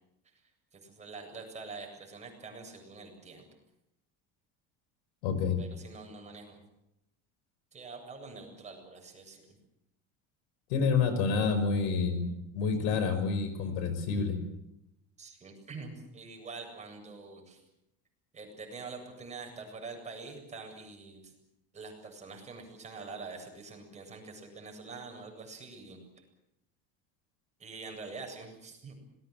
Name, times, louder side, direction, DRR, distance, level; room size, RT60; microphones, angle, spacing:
voice 1, 0.7-3.4 5.6-6.6 7.7-9.5 15.2-17.6 18.3-21.3 21.7-26.2 27.6-28.9, right 4 dB, 20° right, 2 dB, 7.9 m, -45 dB
voice 2, 5.2-5.6 10.7-12.3 12.5-14.4, left 5 dB, 85° left, 10 dB, 5.6 m, -28 dB
26.5 x 20.0 x 7.9 m, 0.84 s
cardioid pair, 140°, 32 cm